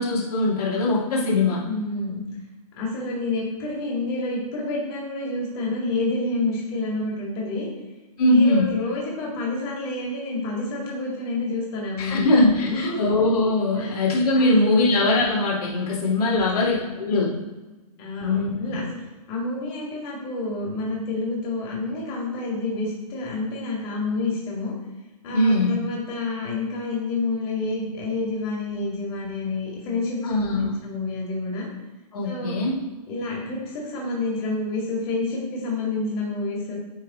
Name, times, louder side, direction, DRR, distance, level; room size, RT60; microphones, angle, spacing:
voice 1, 0.0-1.6 8.2-8.6 12.0-17.3 18.2-18.8 25.3-25.8 30.2-30.7 32.1-32.8, left 2 dB, 75° left, -5 dB, 2.3 m, -21 dB
voice 2, 1.7-2.2 2.8-7.7 8.2-12.3 12.6-13.1 13.8-13.9 14.4-14.8 16.3-16.8 18.0-18.9 19.3-24.7 25.2-31.7 32.2-32.6 33.1-36.7, left 2 dB, 35° left, -3 dB, 2.2 m, -29 dB
8.9 x 3.4 x 4.2 m, 1.2 s
hypercardioid pair, 140°, 20 cm